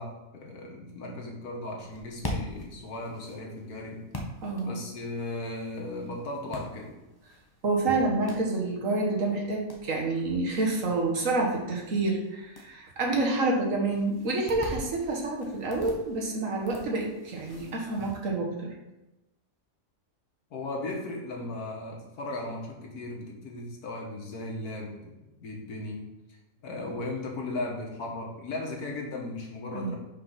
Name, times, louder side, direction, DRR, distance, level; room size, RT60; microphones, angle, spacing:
voice 1, 0.0-4.1 4.6-7.0 20.5-25.2 25.4-26.4 26.6-30.0, left 2 dB, 85° left, 0 dB, 1.8 m, -36 dB
sound 1, 1.8-18.2, left 1 dB, 20° left, 0.7 m, -44 dB
voice 2, 4.4-4.8 7.6-18.7 29.7-29.9, right 2 dB, 60° right, -1 dB, 1.6 m, -28 dB
5.2 x 4.1 x 5.6 m, 0.98 s
omnidirectional pair, 1.6 m